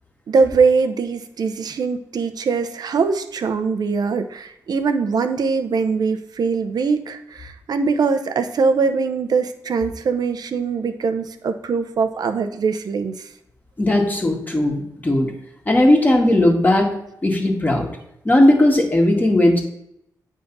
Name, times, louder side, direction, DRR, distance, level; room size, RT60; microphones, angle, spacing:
voice 1, 0.3-13.3, right 5 dB, 70° right, 9 dB, 0.7 m, -22 dB
voice 2, 13.8-15.3 15.6-16.9 17.2-17.9 18.2-19.6, left 1 dB, 25° left, 1 dB, 1.8 m, -17 dB
8.5 x 3.6 x 5.4 m, 0.78 s
cardioid pair, 80°, 7 cm